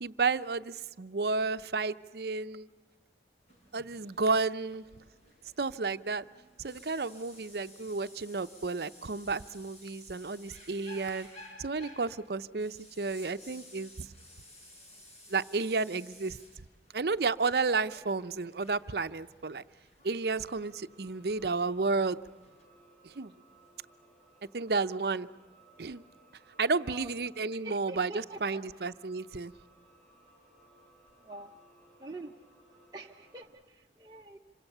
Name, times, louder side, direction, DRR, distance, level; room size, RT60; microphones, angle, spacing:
voice 1, 0.0-2.7 3.7-4.9 5.6-6.2 6.6-11.3 11.6-13.9 15.3-16.4 16.9-19.6 20.0-22.2 23.2-23.3 24.5-25.3 25.8-26.0 26.6-29.5, right 4 dB, 65° right, 12 dB, 0.7 m, -32 dB
sound 1, 3.5-22.6, left 1 dB, 35° left, 5.6 m, -55 dB
sound 2, 20.1-33.4, right 2 dB, ahead, 7.5 m, -62 dB
voice 2, 26.8-28.7 31.2-31.5 32.0-32.3 32.9-34.4, right 2 dB, 25° right, -1 dB, 0.9 m, -46 dB
26.5 x 24.0 x 6.8 m, 1.3 s
head